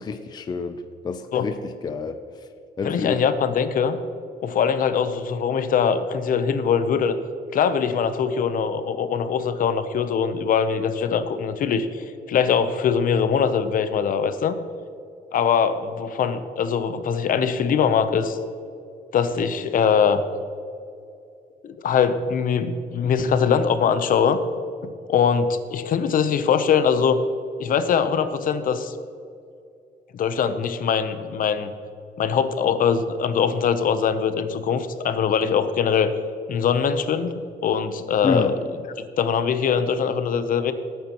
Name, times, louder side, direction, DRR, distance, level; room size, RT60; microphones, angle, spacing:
voice 1, 0.0-2.5 2.8-3.2 38.2-38.6, left 5 dB, 25° left, 7 dB, 0.5 m, -28 dB
voice 2, 2.8-4.0 4.4-7.2 7.5-14.5 15.3-18.4 19.1-20.2 21.6-24.4 24.8-27.2 27.6-28.9 30.1-31.7 32.2-36.1 36.5-37.3 37.6-38.5 39.2-40.7, left 7 dB, 55° left, 10 dB, 0.7 m, -22 dB
18.5 x 9.0 x 3.0 m, 2.5 s
cardioid pair, 170°, 17 cm